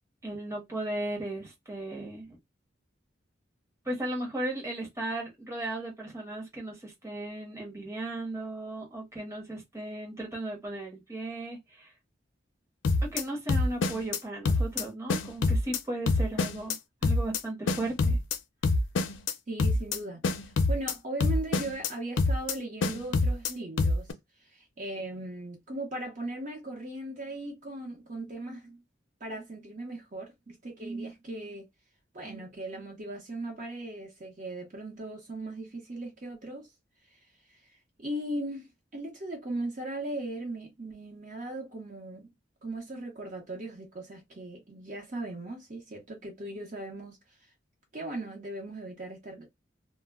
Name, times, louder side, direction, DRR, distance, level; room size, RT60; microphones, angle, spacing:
voice 1, 0.2-2.4 3.8-11.9 13.0-18.2, right 1 dB, 15° right, 0.8 m, -36 dB
sound 1, 12.8-13.2 13.5-14.2 14.5-14.8 15.1-15.8 16.1-16.8 17.0-17.4 17.7-18.4 18.6-19.3 19.6-20.0 20.2-20.9 21.2-21.9 22.2-22.5 22.8-23.5 23.8-24.1, left 3 dB, 85° left, 0.4 m, -25 dB
voice 2, 19.5-24.1 24.5-28.8 29.2-31.7 32.1-36.7 38.0-38.7 38.9-42.3 42.6-47.2 47.9-49.5, right 1 dB, 45° right, 0.8 m, -38 dB
2.1 x 2.1 x 3.4 m
head